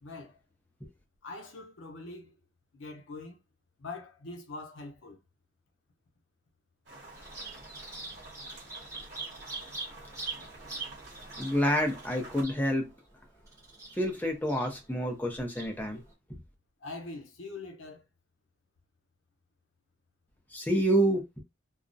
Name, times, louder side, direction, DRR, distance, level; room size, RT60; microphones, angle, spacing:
voice 1, 0.0-0.4 1.2-2.4 2.7-3.4 3.8-5.2 16.8-18.0, left 3 dB, 85° left, 0.7 m, -43 dB
sound 1, 6.9-12.4, right 2 dB, 60° right, 1.2 m, -49 dB
Bird vocalization bird call bird song, 7.1-16.1, right 3 dB, 15° right, 0.8 m, -44 dB
voice 2, 11.4-12.9 14.0-16.0 16.3-16.4 20.5-21.4, equal, 10° left, 0.5 m, -28 dB
2.3 x 2.0 x 2.5 m
head